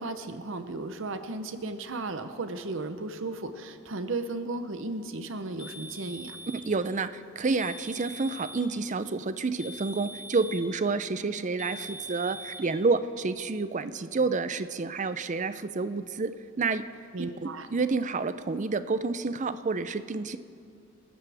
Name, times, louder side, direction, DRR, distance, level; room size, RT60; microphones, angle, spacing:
voice 1, 0.0-6.4 17.1-17.7, right 2 dB, 65° right, 9 dB, 0.8 m, -35 dB
sound 1, 5.6-6.7 7.6-8.7 9.6-10.7 11.6-12.7, equal, 55° left, 2.5 m, -43 dB
voice 2, 6.5-16.8 17.4-20.4, right 4 dB, 35° right, 12 dB, 0.5 m, -29 dB
27.5 x 13.0 x 3.5 m, 2.5 s
head